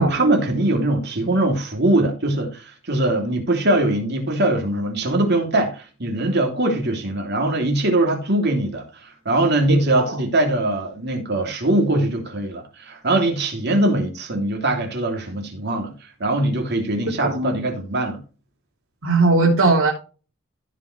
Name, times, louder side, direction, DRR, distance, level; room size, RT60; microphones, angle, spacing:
voice 1, 0.0-15.9 16.2-18.2, right 1 dB, 55° right, 3.1 m, -21 dB
voice 2, 19.0-19.9, right 3 dB, 90° right, 3.1 m, -18 dB
15.5 x 5.3 x 3.3 m
head